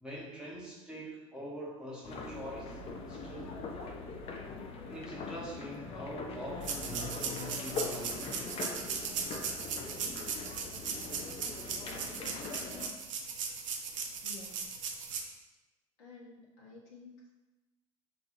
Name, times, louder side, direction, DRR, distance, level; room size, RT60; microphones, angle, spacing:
voice 1, 0.0-2.8 3.1-3.7 4.9-8.6, equal, 5° right, -4 dB, 1.0 m, -44 dB
sound 1, 2.0-12.9, left 4 dB, 35° left, 0.6 m, -42 dB
sound 2, 6.6-15.2, right 6 dB, 70° right, 0.6 m, -38 dB
voice 2, 14.2-14.7 16.0-17.3, left 3 dB, 55° left, -3 dB, 1.1 m, -52 dB
6.8 x 2.5 x 2.6 m, 1.1 s
figure-of-eight pair, 70°, 17 cm